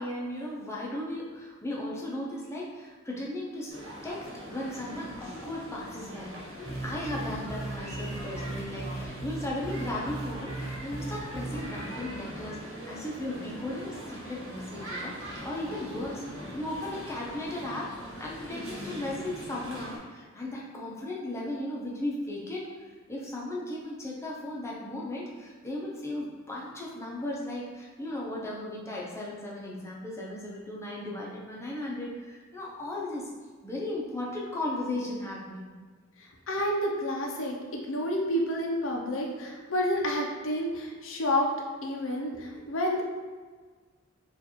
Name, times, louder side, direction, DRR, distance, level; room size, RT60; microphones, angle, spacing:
voice 1, 0.0-3.7 4.0-6.3 6.8-16.2 16.5-33.3 33.6-35.7, left 1 dB, 15° left, -4 dB, 0.7 m, -36 dB
sound 1, 3.7-20.0, equal, 85° right, 1.4 m, -42 dB
sound 2, 6.7-11.8, right 2 dB, 30° right, 0.4 m, -38 dB
voice 2, 36.2-41.5 41.8-43.0, equal, 75° left, 0 dB, 0.7 m, -29 dB
4.5 x 2.5 x 3.0 m, 1.5 s
head